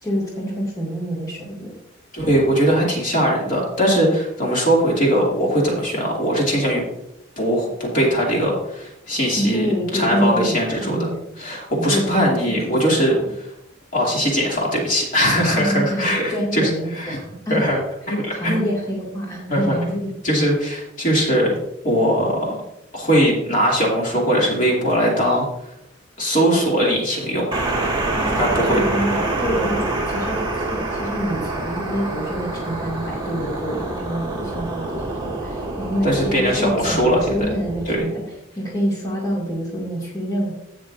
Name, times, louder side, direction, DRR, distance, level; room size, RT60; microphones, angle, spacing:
voice 1, 0.0-1.7 9.4-11.3 11.7-13.3 15.5-17.8 18.1-19.9 28.1-38.2 38.6-40.5, equal, 20° left, -5 dB, 2.2 m, -27 dB
voice 2, 2.1-6.8 7.4-9.7 9.9-11.0 11.4-13.1 13.9-17.2 17.5-17.8 18.1-18.6 19.5-21.5 21.8-22.6 22.9-25.5 26.2-27.4 28.4-28.8 36.0-37.3 37.9-38.0, equal, 40° left, -3 dB, 2.5 m, -20 dB
sound 1, 27.5-38.0, right 2 dB, 25° right, 1.6 m, -26 dB
16.0 x 6.2 x 2.6 m, 0.82 s
head